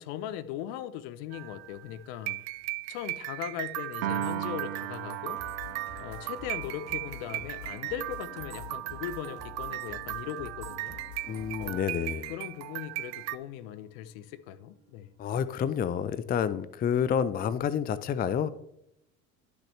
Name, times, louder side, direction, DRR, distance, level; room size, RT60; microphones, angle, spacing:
voice 1, 0.0-2.4 2.9-5.4 6.0-11.0 11.6-11.9 12.3-15.1, left 11 dB, 60° left, 0.7 m, -39 dB
sound 1, 1.3-13.4, right 18 dB, 45° right, 0.5 m, -38 dB
Piano, 4.0-10.4, right 11 dB, 85° right, 0.7 m, -39 dB
sound 2, 5.3-11.8, left 6 dB, 80° left, 2.7 m, -47 dB
voice 2, 11.3-12.3 15.2-18.5, left 8 dB, 25° left, 0.5 m, -29 dB
11.5 x 6.3 x 3.2 m
hypercardioid pair, 65°, 39 cm